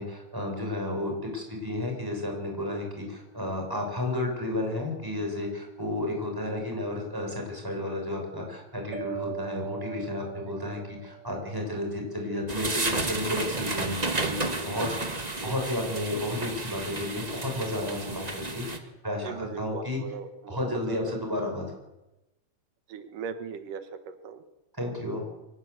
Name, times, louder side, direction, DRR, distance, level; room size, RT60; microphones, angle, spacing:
voice 1, 0.0-20.0 20.5-21.6 24.7-25.2, left 1 dB, 5° right, 2 dB, 6.3 m, -32 dB
sound 1, 8.9-11.9, right 10 dB, 65° right, 3.0 m, -40 dB
sound 2, 12.5-18.8, right 2 dB, 25° right, 0.8 m, -32 dB
voice 2, 19.2-21.2 22.9-24.4, right 6 dB, 85° right, 8 dB, 3.0 m, -39 dB
24.0 x 19.0 x 8.2 m, 0.98 s
omnidirectional pair, 3.6 m